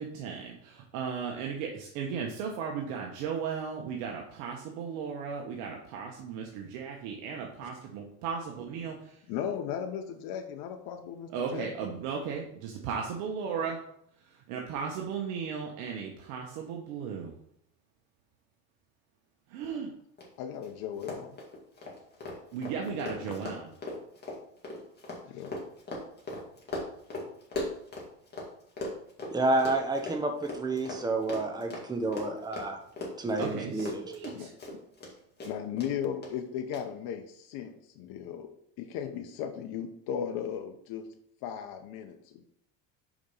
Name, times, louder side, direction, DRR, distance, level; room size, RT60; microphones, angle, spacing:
voice 1, 0.0-9.0 11.3-13.8 14.5-17.3 19.5-19.9 22.5-23.7 33.4-34.5, right 6 dB, 75° right, 1 dB, 1.2 m, -36 dB
voice 2, 9.3-11.9 20.4-21.3 22.8-23.4 25.3-25.5 34.3-34.5 35.4-38.5 38.8-41.1 41.4-42.4, left 8 dB, 60° left, 5 dB, 1.0 m, -36 dB
Run, 20.2-20.3 20.5-20.7 21.0-28.5 28.8-35.1 35.4-35.9 36.2-36.3 36.7-36.8, left 2 dB, 25° left, 2.4 m, -38 dB
voice 3, 29.3-32.8 33.2-34.1, right 2 dB, 10° right, 3 dB, 1.1 m, -29 dB
5.1 x 5.0 x 5.5 m, 0.71 s
supercardioid pair, 105°, 39 cm